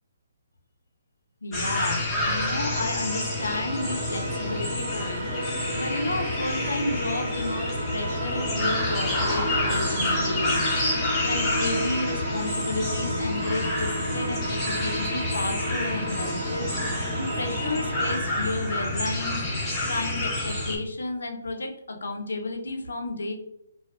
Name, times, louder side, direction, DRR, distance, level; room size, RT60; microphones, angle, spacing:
voice 1, 1.4-5.4 5.8-19.4 19.8-23.3, left 2 dB, 80° left, 3 dB, 0.5 m, -32 dB
sound 1, 1.5-20.8, left 1 dB, 15° left, 0.8 m, -29 dB
sound 2, 2.5-18.2, right 1 dB, 40° right, 0.7 m, -33 dB
2.4 x 2.3 x 2.3 m, 0.77 s
hypercardioid pair, 150°, 0 cm